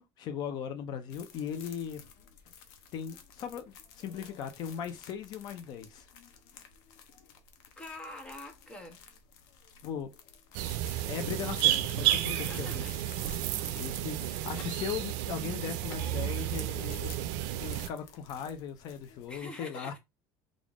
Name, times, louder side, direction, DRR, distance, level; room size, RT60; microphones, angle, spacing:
voice 1, 0.0-2.0 2.9-6.1 9.8-10.1 11.0-12.9 13.7-17.2 17.6-20.0, left 8 dB, 45° left, 0.6 m, -38 dB
sound 1, 1.1-19.4, left 7 dB, 80° left, 0.8 m, -53 dB
voice 2, 7.8-9.0 11.4-12.9 14.5-14.8 15.7-16.7 19.3-20.0, left 1 dB, 10° left, 0.8 m, -46 dB
sound 2, 10.5-17.9, right 13 dB, 80° right, 0.5 m, -32 dB
3.5 x 2.5 x 3.6 m
cardioid pair, 165°, 10 cm